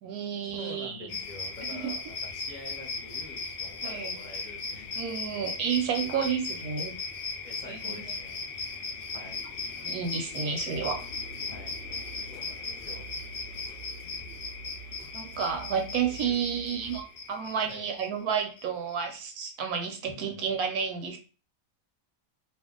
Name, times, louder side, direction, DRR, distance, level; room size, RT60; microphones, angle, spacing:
voice 1, 0.0-1.1 1.8-1.9 3.8-4.1 5.0-6.9 7.7-8.0 9.8-11.0 15.1-21.2, right 7 dB, 75° right, 4 dB, 1.1 m, -31 dB
voice 2, 0.6-5.5 6.0-6.4 7.4-8.5 9.1-9.4 11.5-11.7 12.3-13.1 16.1-16.4 17.6-17.8 20.1-20.4, left 2 dB, 35° left, -4 dB, 0.8 m, -47 dB
sound 1, 1.1-19.1, left 4 dB, 90° left, 0.5 m, -38 dB
sound 2, 10.7-17.5, right 5 dB, 50° right, 0.6 m, -47 dB
2.6 x 2.3 x 3.6 m, 0.36 s
omnidirectional pair, 1.7 m